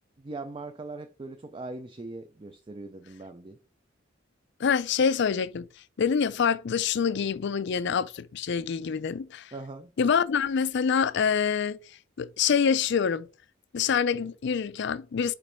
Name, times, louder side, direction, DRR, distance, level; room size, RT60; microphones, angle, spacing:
voice 1, 0.2-3.6 9.5-9.9, right 2 dB, 25° right, 0.4 m, -40 dB
voice 2, 4.6-5.7 6.0-9.5 10.0-11.8 12.2-13.3 13.7-15.3, left 6 dB, 60° left, 0.4 m, -26 dB
5.1 x 4.3 x 4.4 m
head